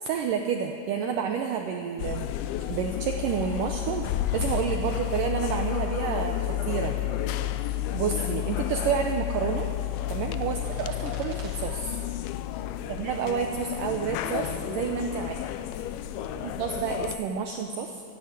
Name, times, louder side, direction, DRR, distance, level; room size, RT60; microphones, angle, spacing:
voice 1, 0.0-2.3 2.7-4.0 4.3-7.0 7.9-9.7 10.1-12.0 12.9-15.4 16.6-18.0, right 7 dB, 85° right, 4 dB, 1.9 m, -29 dB
sound 1, 2.0-17.2, left 13 dB, 80° left, 2.3 m, -31 dB
sound 2, 6.3-6.4 6.8-7.1 7.4-7.6 8.4-8.7 9.3-11.5, right 2 dB, 55° right, 4.4 m, -52 dB
voice 2, 6.9-7.3 10.4-10.8 12.5-13.0 15.2-15.5 16.1-16.6, left 1 dB, 35° left, -4 dB, 3.7 m, -46 dB
14.0 x 11.5 x 9.0 m, 2.5 s
omnidirectional pair, 4.8 m